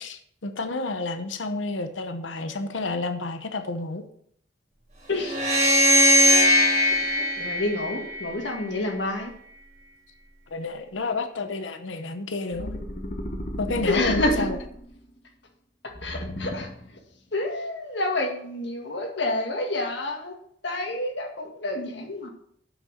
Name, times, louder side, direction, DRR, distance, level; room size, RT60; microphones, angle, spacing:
voice 1, 0.0-4.0 5.9-6.0 10.5-12.7 13.6-14.5, left 3 dB, 80° left, 8 dB, 0.9 m, -30 dB
voice 2, 5.1-5.4 6.8-9.3 13.9-14.3 16.0-17.0 17.3-20.4 20.6-22.3, left 2 dB, 65° left, 2 dB, 2.0 m, -29 dB
sound 1, 5.3-8.6, left 1 dB, 35° right, 3.0 m, -20 dB
sound 2, 12.5-15.0 15.9-16.9, equal, 40° left, 1.3 m, -34 dB
8.1 x 6.1 x 6.4 m, 0.66 s
head